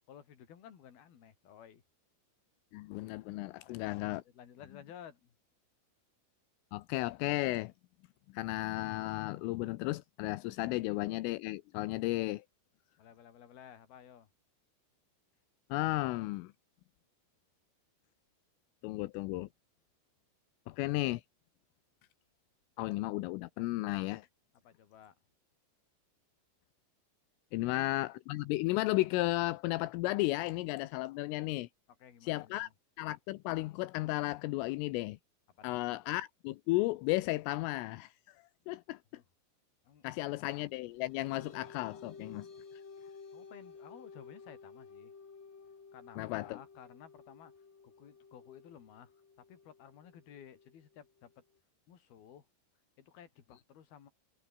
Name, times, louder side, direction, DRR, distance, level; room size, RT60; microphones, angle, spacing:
voice 1, 0.1-1.8 3.6-5.3 13.0-14.3 24.6-25.2 27.5-28.0 32.0-32.7 35.6-35.9 39.1-39.3 39.8-40.4 43.3-45.1 45.9-51.4 51.9-52.5 53.0-54.1, left 9 dB, 50° left, 4.6 m, -55 dB
voice 2, 2.7-4.2 6.7-7.7 8.3-12.4 15.7-16.5 18.8-19.5 20.7-21.2 22.8-24.3 27.5-31.7 32.2-32.7 33.0-35.2 35.6-38.4 38.7-39.0 40.0-42.5 46.2-46.6, left 19 dB, 85° left, 3.4 m, -34 dB
sound 1, 40.7-51.6, left 5 dB, 30° left, 2.7 m, -54 dB
omnidirectional pair, 5.8 m